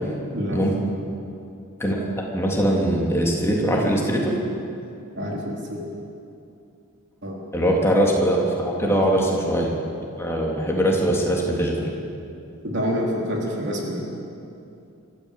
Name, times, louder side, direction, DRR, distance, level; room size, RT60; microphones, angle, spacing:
voice 1, 2.3-4.4 7.5-9.7 10.2-11.9, equal, 10° left, -2 dB, 3.2 m, -21 dB
voice 2, 5.2-5.8 7.2-7.4 8.8-9.0 12.6-14.0, equal, 50° right, -2 dB, 4.0 m, -27 dB
25.0 x 14.0 x 8.4 m, 2.6 s
head